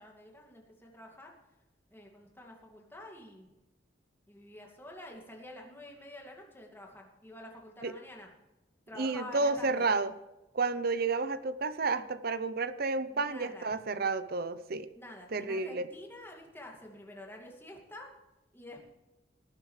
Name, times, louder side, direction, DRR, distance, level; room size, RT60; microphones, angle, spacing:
voice 1, 0.0-1.3 1.9-3.5 4.3-8.3 8.9-9.9 13.1-13.7 14.9-18.1 18.5-18.8, left 1 dB, 15° left, 0 dB, 2.5 m, -48 dB
voice 2, 9.0-10.1 10.5-14.9 15.3-15.9, right 3 dB, 55° right, 13 dB, 0.8 m, -31 dB
19.0 x 10.0 x 3.3 m, 1.0 s
head